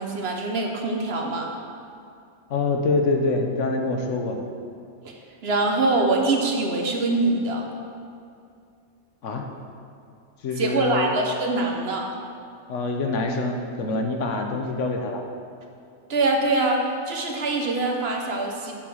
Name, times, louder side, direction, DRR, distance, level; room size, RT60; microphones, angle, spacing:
voice 1, 0.0-1.5 5.0-5.1 5.4-7.6 10.6-12.0 16.1-18.7, right 2 dB, 55° right, 1 dB, 1.0 m, -24 dB
voice 2, 2.5-4.4 9.2-9.4 10.4-11.1 12.7-15.2, left 3 dB, 70° left, 3 dB, 1.1 m, -25 dB
7.7 x 4.5 x 6.3 m, 2.4 s
omnidirectional pair, 1.3 m